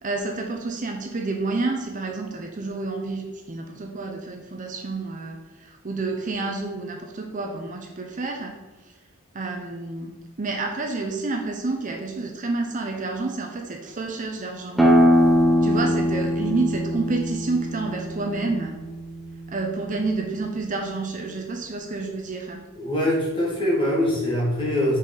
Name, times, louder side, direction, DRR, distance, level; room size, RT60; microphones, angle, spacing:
voice 1, 0.0-8.6 9.3-14.9 15.6-18.7 19.5-22.6, right 3 dB, 40° right, 2 dB, 0.6 m, -29 dB
sound 1, 14.8-20.2, equal, ahead, 0.7 m, -22 dB
voice 2, 22.7-25.0, left 1 dB, 25° left, -4 dB, 1.8 m, -23 dB
6.1 x 4.2 x 3.9 m, 1.2 s
head